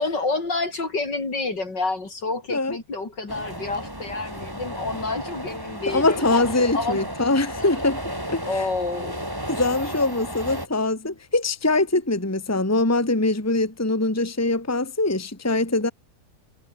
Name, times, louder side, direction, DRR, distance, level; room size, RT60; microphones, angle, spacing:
voice 1, 0.0-6.4 6.7-7.0 7.6-7.9 8.4-9.6 9.9-10.1, left 3 dB, 70° left, 5.3 m, -29 dB
sound 1, 3.3-10.7, equal, 10° right, 7.4 m, -33 dB
voice 2, 5.9-8.0 8.3-8.4 9.5-15.9, left 2 dB, 10° left, 2.0 m, -23 dB
omnidirectional pair, 2.0 m